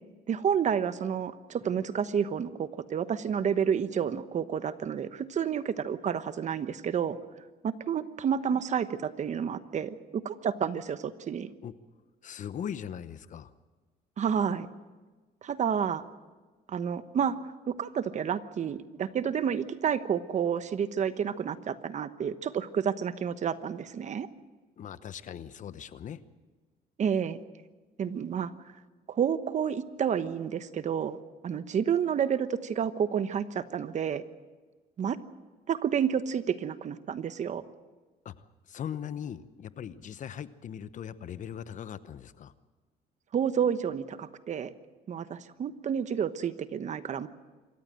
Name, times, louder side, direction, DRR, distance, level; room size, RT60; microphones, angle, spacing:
voice 1, 0.3-7.2 7.6-11.5 14.2-14.7 15.4-16.0 16.7-17.4 17.7-24.3 27.0-27.4 28.0-28.5 29.1-31.2 31.4-34.2 35.0-35.2 35.7-37.6 43.3-44.7 45.1-47.3, right 8 dB, 45° right, 12 dB, 1.1 m, -30 dB
voice 2, 12.2-13.5 24.8-26.2 38.2-42.5, left 9 dB, 50° left, 14 dB, 0.9 m, -40 dB
26.5 x 14.5 x 7.7 m, 1.3 s
cardioid pair, 110°, 17 cm